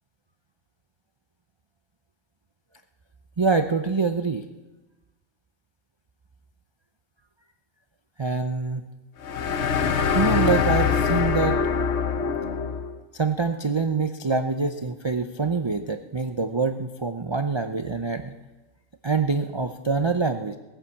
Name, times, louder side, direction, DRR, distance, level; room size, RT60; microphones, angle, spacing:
voice 1, 3.4-4.4 8.2-8.8 10.1-11.7 13.1-18.3 19.0-20.6, right 4 dB, 45° right, 7 dB, 0.3 m, -25 dB
sound 1, 9.2-13.0, left 6 dB, 60° left, 1.1 m, -23 dB
18.0 x 9.0 x 7.2 m, 1.1 s
omnidirectional pair, 1.4 m